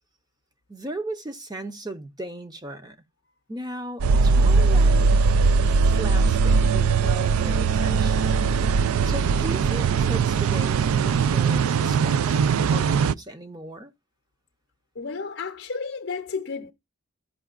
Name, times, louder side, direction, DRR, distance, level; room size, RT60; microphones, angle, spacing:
voice 1, 0.7-3.0 3.5-5.1 5.6-8.4 8.9-13.9, right 1 dB, 20° right, 0.6 m, -37 dB
sound 1, 4.0-13.1, right 5 dB, 85° right, 0.3 m, -20 dB
voice 2, 14.9-16.7, left 4 dB, 55° left, 0.6 m, -32 dB
13.0 x 5.7 x 2.4 m
head